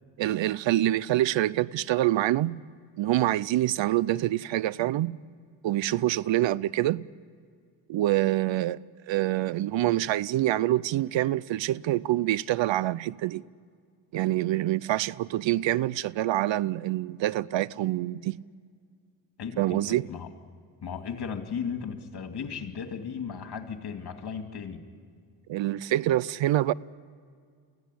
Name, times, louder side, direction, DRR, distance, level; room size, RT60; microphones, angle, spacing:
voice 1, 0.2-2.6 3.0-5.2 5.6-7.0 7.9-13.4 14.1-18.4 19.6-20.1 25.5-26.7, right 15 dB, 70° right, 0.6 m, -26 dB
voice 2, 19.4-20.3 20.8-24.8, left 6 dB, 55° left, 2.6 m, -36 dB
25.0 x 16.0 x 9.9 m
cardioid pair, 70°, 48 cm